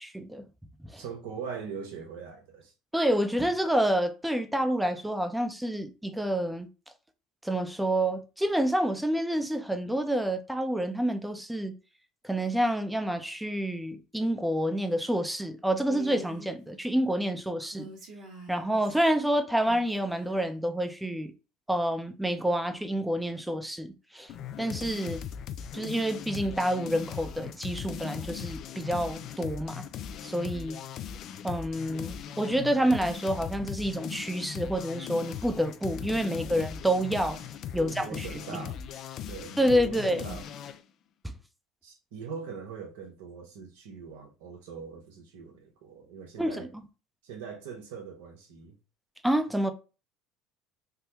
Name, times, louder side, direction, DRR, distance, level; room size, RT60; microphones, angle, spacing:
voice 1, 1.0-2.7 36.3-36.6 37.8-38.8 39.3-40.5 41.8-46.7 47.2-48.7, right 6 dB, 75° right, 0.9 m, -42 dB
voice 2, 2.9-6.7 7.4-11.7 12.2-17.9 18.5-21.3 21.7-24.3 24.6-25.2 25.7-29.8 30.2-30.8 31.4-37.4 37.7-38.3 39.6-40.2 46.4-46.7 49.2-49.7, right 1 dB, 5° right, 0.6 m, -28 dB
Female speech woman speaking, 15.8-16.5 17.6-19.1 19.6-20.5, right 1 dB, 60° right, 1.4 m, -47 dB
sound 1, 24.3-40.8, left 8 dB, 55° left, 0.3 m, -39 dB
3.5 x 2.1 x 2.9 m
hypercardioid pair, 75°, 0 cm